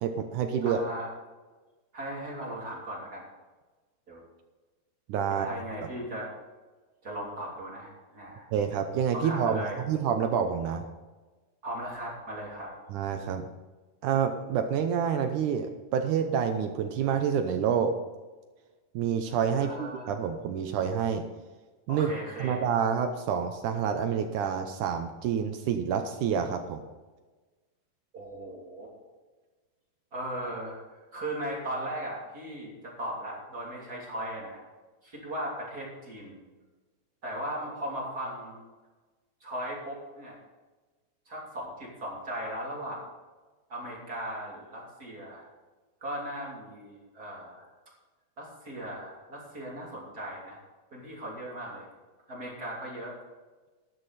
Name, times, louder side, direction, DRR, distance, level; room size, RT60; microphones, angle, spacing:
voice 1, 0.0-0.8 5.1-5.5 8.5-10.9 12.9-13.4 14.0-17.9 18.9-21.2 21.9-22.1 22.4-26.8, right 7 dB, 80° right, 6 dB, 1.8 m, -28 dB
voice 2, 0.6-1.1 1.9-3.2 4.1-4.2 5.3-6.3 7.0-8.5 9.1-9.8 11.6-12.7 19.5-20.2 21.9-22.6 28.1-29.1 30.1-30.8 31.1-34.6 35.0-36.4 37.2-38.6 39.4-40.4 41.3-43.0 43.7-45.4 46.0-47.6 48.4-50.6 50.9-51.9 52.3-53.1, right 1 dB, 25° right, -3 dB, 3.0 m, -37 dB
13.0 x 11.0 x 4.2 m, 1.3 s
omnidirectional pair, 4.6 m